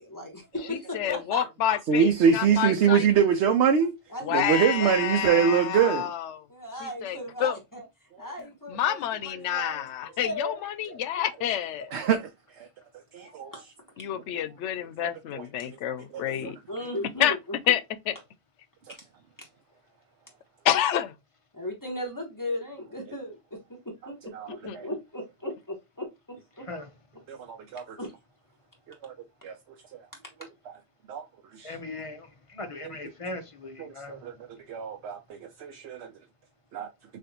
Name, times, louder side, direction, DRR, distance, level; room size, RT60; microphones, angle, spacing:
voice 1, 0.0-1.8 2.2-2.5 4.1-5.2 6.5-7.8 8.2-11.2 12.0-12.1 13.1-13.7 14.0-14.1 16.7-17.8 18.9-19.1 19.4-19.5 21.5-26.7 27.1-27.2 28.0-28.1 30.1-30.3, left 1 dB, 15° left, 1.5 m, -37 dB
voice 2, 0.7-3.1 4.2-6.4 6.8-7.6 8.7-11.9 14.0-16.6 17.2-17.4 17.7-17.8 18.1-18.2 20.6-21.1 24.7-24.8, left 11 dB, 85° left, 0.9 m, -28 dB
voice 3, 1.9-3.9 4.3-6.1 11.9-12.2 12.6-12.7 13.1-13.5 15.3-15.5 16.1-16.5 24.3-24.5 24.7-24.9 27.3-28.0 29.0-29.1 29.4-29.6 29.9-30.0 31.1-31.3 31.5-31.8 32.8-32.9 33.8-34.3 34.7-36.1 36.7-36.9, right 7 dB, 75° right, 0.9 m, -24 dB
voice 4, 31.6-32.3 32.5-34.2, left 2 dB, 35° left, 0.6 m, -38 dB
6.4 x 2.6 x 2.9 m
omnidirectional pair, 1.2 m